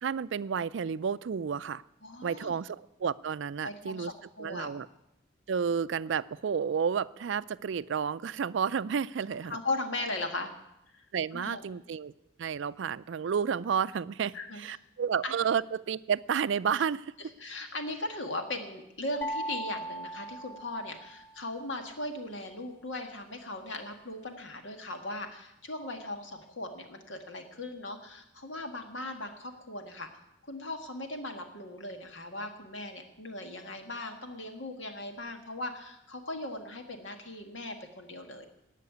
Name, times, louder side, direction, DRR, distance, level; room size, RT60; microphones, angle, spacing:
voice 1, 0.0-1.8 2.2-4.1 4.4-4.9 5.5-9.6 11.1-12.1 12.4-17.1, right 7 dB, 65° right, 17 dB, 0.4 m, -31 dB
voice 2, 2.0-2.6 3.6-4.7 9.5-10.5 10.9-11.1 11.3-11.6 14.3-14.8 15.2-15.3 17.2-30.1 30.4-38.4, left 2 dB, 70° left, 5 dB, 1.8 m, -38 dB
sound 1, 19.2-21.4, right 1 dB, 10° left, 0.8 m, -38 dB
17.0 x 5.9 x 9.5 m, 0.88 s
head